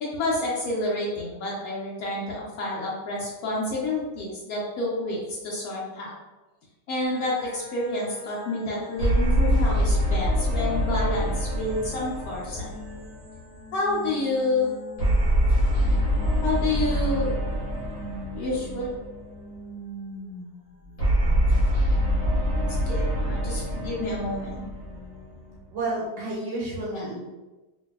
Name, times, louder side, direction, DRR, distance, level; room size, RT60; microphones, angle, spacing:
voice 1, 0.0-6.1 6.9-12.7 13.7-14.7 16.4-17.3 18.3-18.9 22.8-24.7 26.9-27.0, left 2 dB, 90° left, -4 dB, 0.7 m, -29 dB
sound 1, 7.0-25.6, right 2 dB, 20° right, 0.9 m, -44 dB
sound 2, 9.0-13.6 15.0-19.4 21.0-25.5, equal, 45° left, 0.8 m, -24 dB
voice 2, 25.7-27.2, right 2 dB, 70° right, -5 dB, 1.3 m, -30 dB
3.0 x 2.6 x 2.3 m, 1.1 s
omnidirectional pair, 2.3 m